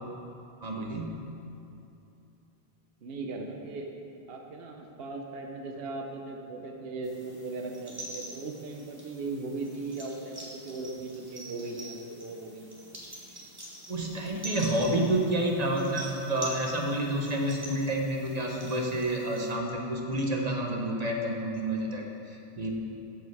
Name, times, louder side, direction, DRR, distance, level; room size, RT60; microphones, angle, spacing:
voice 1, 0.6-1.2 13.9-22.7, right 1 dB, 40° right, 0 dB, 1.1 m, -29 dB
voice 2, 3.0-3.9 4.3-12.7, right 3 dB, 65° right, 2 dB, 1.0 m, -38 dB
sound 1, 7.0-19.5, right 1 dB, 20° right, 1.6 m, -45 dB
13.5 x 5.4 x 4.7 m, 2.7 s
omnidirectional pair, 1.1 m